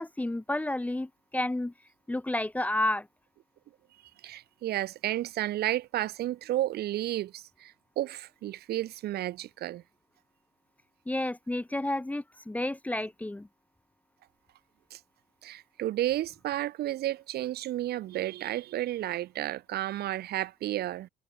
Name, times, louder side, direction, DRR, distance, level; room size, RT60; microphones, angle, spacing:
voice 1, 0.0-1.7 2.1-3.1 11.1-13.5, left 1 dB, 10° left, 1.2 m, -31 dB
voice 2, 4.2-9.8 14.9-15.0 15.4-21.1, right 14 dB, 70° right, 2.9 m, -32 dB
cardioid pair, 110°, 17 cm